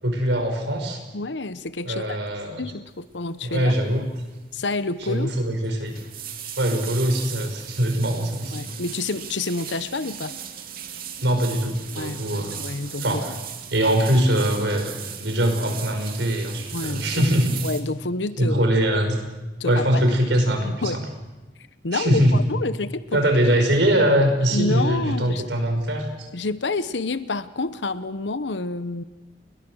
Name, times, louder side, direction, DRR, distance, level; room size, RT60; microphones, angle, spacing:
voice 1, 0.0-1.0 1.9-2.6 3.4-4.0 5.0-5.9 6.6-8.5 11.2-12.6 13.0-13.3 13.7-17.6 18.4-19.2 19.6-21.0 21.9-22.4 23.1-26.3, right 1 dB, 80° right, 4 dB, 5.6 m, -22 dB
voice 2, 1.1-2.2 2.6-3.8 4.5-5.4 8.5-10.3 11.9-13.2 16.7-17.2 17.6-18.7 19.6-20.0 20.6-21.0 21.8-23.2 24.5-25.5 26.3-29.0, left 3 dB, 80° left, 14 dB, 1.0 m, -28 dB
sound 1, 3.5-3.7 4.0-4.3 4.6-4.7 5.6-17.8, right 8 dB, 55° right, 2.5 m, -38 dB
30.0 x 22.0 x 6.4 m, 1.2 s
head